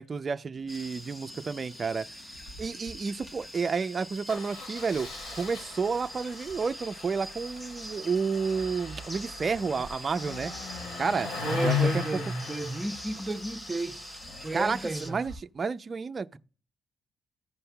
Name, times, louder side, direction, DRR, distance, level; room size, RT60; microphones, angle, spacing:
voice 1, 0.0-2.1 2.6-10.5 11.0-11.3 11.6-12.2 14.5-16.4, right 5 dB, 35° right, 0.4 m, -31 dB
sound 1, 0.5-14.7, left 3 dB, 65° left, 4.7 m, -53 dB
sound 2, 0.7-15.1, equal, 15° left, 1.0 m, -44 dB
Engine starting, 2.3-2.6 2.9-3.0 3.2-3.4 4.3-15.3, left 5 dB, 90° left, 3.4 m, -37 dB
voice 2, 11.4-14.1 14.4-15.2, right 2 dB, 15° right, 0.8 m, -33 dB
15.0 x 5.4 x 2.3 m
cardioid pair, 90°, 0 cm